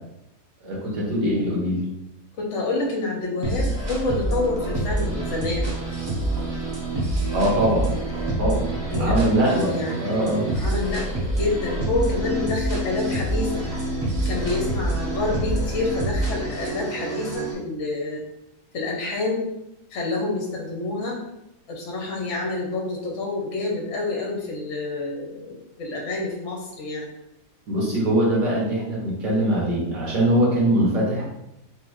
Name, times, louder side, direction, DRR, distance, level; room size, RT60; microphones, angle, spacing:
voice 1, 0.6-1.8 7.3-7.9 8.4-8.7 9.0-10.4 27.7-31.2, right 1 dB, 85° right, -5 dB, 2.0 m, -22 dB
voice 2, 2.4-5.7 8.9-10.0 10.5-13.6 14.2-18.2 18.7-19.4 19.9-21.2 21.7-27.1, left 2 dB, 55° left, 0 dB, 1.0 m, -28 dB
sound 1, 3.4-17.5, right 1 dB, 40° right, 0.3 m, -26 dB
3.6 x 3.5 x 3.0 m, 0.84 s
omnidirectional pair, 1.8 m